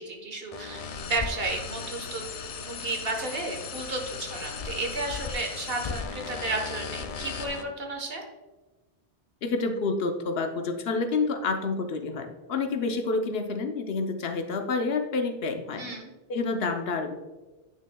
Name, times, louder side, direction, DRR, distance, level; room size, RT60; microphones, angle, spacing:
voice 1, 0.0-2.2 2.6-8.2 15.8-16.1, right 2 dB, 65° right, 3 dB, 1.3 m, -33 dB
sound 1, 0.5-7.6, left 5 dB, 55° left, 0.4 m, -36 dB
voice 2, 9.4-15.9 16.3-17.1, left 4 dB, 75° left, 6 dB, 1.0 m, -28 dB
9.5 x 6.1 x 2.2 m, 1.2 s
omnidirectional pair, 1.0 m